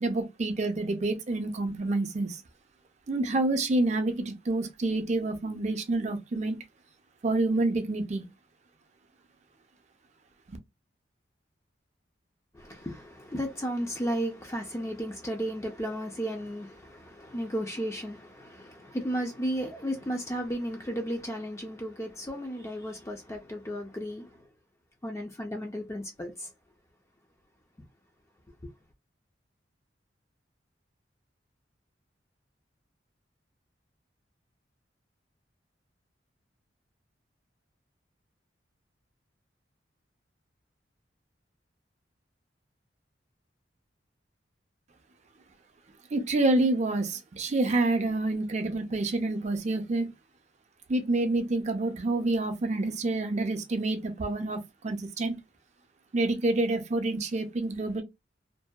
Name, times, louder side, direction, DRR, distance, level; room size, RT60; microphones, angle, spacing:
voice 1, 0.0-2.4 3.1-6.6 7.2-8.3 46.1-50.1 50.9-55.4 56.1-58.0, right 2 dB, 40° right, 0.5 m, -28 dB
voice 2, 12.5-24.4 25.0-26.5 28.6-28.7, equal, 15° left, 0.4 m, -34 dB
2.6 x 2.2 x 2.2 m
head